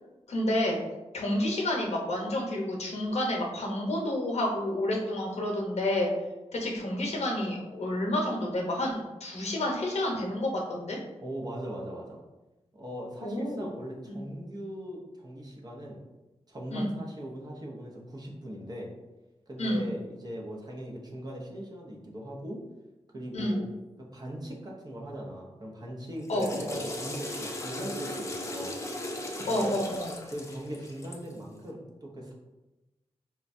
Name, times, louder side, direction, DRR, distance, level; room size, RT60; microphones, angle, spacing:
voice 1, 0.3-0.8 1.1-6.1 6.5-11.0 13.2-13.7 14.1-14.2 16.7-17.0 19.6-19.9 23.3-23.6 26.3-26.5 29.5-30.1, left 1 dB, 80° left, 0 dB, 0.7 m, -29 dB
voice 2, 11.2-12.2 12.7-16.0 16.5-18.9 19.5-22.6 23.1-23.7 24.0-28.8 29.5-29.8 30.3-32.3, equal, 35° right, -2 dB, 0.7 m, -40 dB
Water / Toilet flush, 26.1-31.4, left 1 dB, 25° left, 0.4 m, -37 dB
4.2 x 2.2 x 2.5 m, 1.1 s
wide cardioid pair, 110°, 11 cm